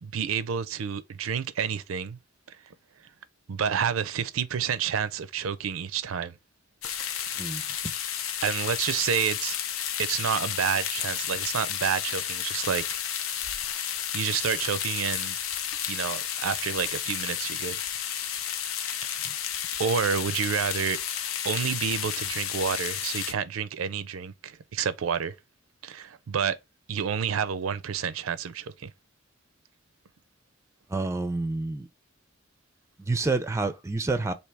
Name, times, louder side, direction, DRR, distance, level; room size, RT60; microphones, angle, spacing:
voice 1, 0.0-2.2 2.5-2.7 3.5-6.3 7.1-7.3 8.4-9.6 10.0-12.8 14.1-15.4 15.9-17.8 19.8-21.0 21.4-25.3 25.8-26.6 26.9-28.9, right 7 dB, 85° right, 0.4 m, -29 dB
sound 1, 6.8-23.3, left 9 dB, 90° left, 0.6 m, -32 dB
voice 2, 30.9-31.9 33.0-34.3, right 3 dB, 15° right, 0.4 m, -28 dB
3.3 x 2.7 x 4.5 m
head